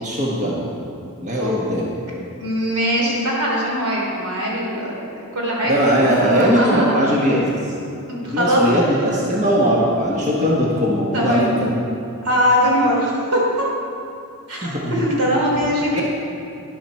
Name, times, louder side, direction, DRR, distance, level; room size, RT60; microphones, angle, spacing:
voice 1, 0.0-0.7 1.2-1.9 5.6-7.7 8.2-11.8 14.5-15.0 15.9-16.0, equal, 35° right, -4 dB, 1.4 m, -20 dB
voice 2, 2.1-4.9 5.3-6.9 8.1-8.6 11.1-11.5 12.2-13.6 14.5-16.0, equal, 85° right, -3 dB, 3.2 m, -21 dB
11.5 x 10.5 x 4.5 m, 2.6 s
head